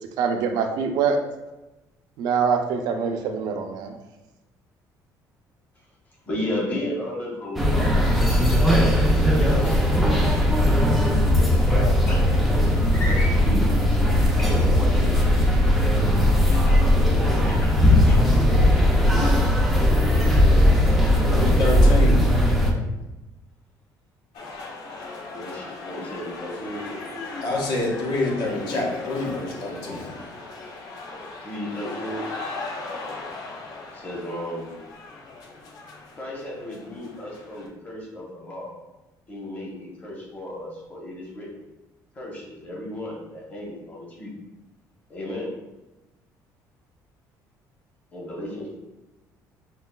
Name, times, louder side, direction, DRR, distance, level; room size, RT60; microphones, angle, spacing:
voice 1, 0.2-1.2 2.2-3.9, right 6 dB, 70° right, 5 dB, 0.4 m, -24 dB
voice 2, 6.1-8.3 8.7-10.0 11.0-12.7 13.0-14.7 15.8-16.5 17.1-17.6 18.3-19.1 20.0-20.8 21.1-21.6 25.2-26.8 27.4-27.7 28.0-28.9 31.1-32.3 32.7-33.0 33.9-34.8 36.2-38.7 39.3-41.6 42.1-44.3 45.1-45.5 48.1-48.8, left 1 dB, 20° left, -3 dB, 0.8 m, -35 dB
sound 1, 7.6-22.7, left 1 dB, ahead, 0.3 m, -18 dB
sound 2, 12.0-12.2 12.9-13.6 14.4-15.0 16.5-16.8 17.3-18.4 18.9-19.3, left 1 dB, 40° left, 1.2 m, -33 dB
voice 3, 21.3-22.4 27.4-30.1, left 2 dB, 75° left, -2 dB, 0.9 m, -27 dB
sound 3, 24.3-37.7, left 3 dB, 60° left, 0.5 m, -38 dB
5.2 x 2.2 x 2.2 m, 1.0 s
cardioid pair, 180°, 7 cm